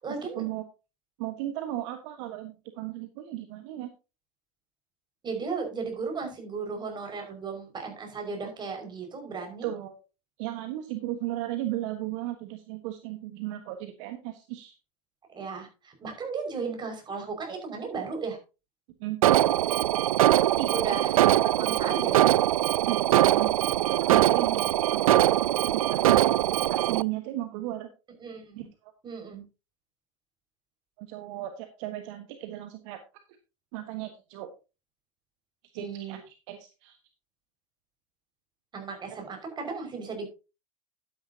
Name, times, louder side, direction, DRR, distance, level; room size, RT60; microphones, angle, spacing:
voice 1, 0.0-0.4 5.2-9.7 15.3-18.4 20.7-22.1 28.2-28.7 29.0-29.4 35.8-36.2 38.7-40.3, right 5 dB, 25° right, 3 dB, 5.5 m, -35 dB
voice 2, 1.2-3.9 9.6-10.0 10.4-14.7 19.0-19.2 20.6-20.7 22.7-23.5 23.9-25.3 25.7-26.0 26.7-27.9 28.6-28.9 31.0-33.0 33.7-34.5 35.7-37.0, right 14 dB, 60° right, 7 dB, 1.4 m, -35 dB
Alarm, 19.2-27.0, right 13 dB, 80° right, 0.4 m, -22 dB
11.5 x 9.8 x 2.8 m, 0.30 s
hypercardioid pair, 100°, 18 cm